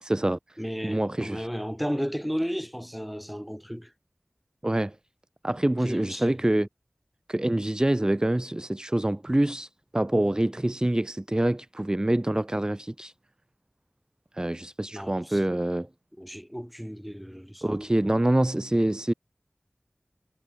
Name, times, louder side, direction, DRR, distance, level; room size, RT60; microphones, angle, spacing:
voice 1, 0.0-0.6 0.8-1.5 4.6-5.0 5.4-6.7 7.3-13.1 14.3-15.9 17.6-19.1, right 1 dB, 20° right, 0.5 m, -26 dB
voice 2, 0.6-3.9 5.8-6.4 14.9-15.4 16.2-17.7 18.0-18.1, equal, ahead, 2.0 m, -34 dB
wide cardioid pair, 50°, 3 cm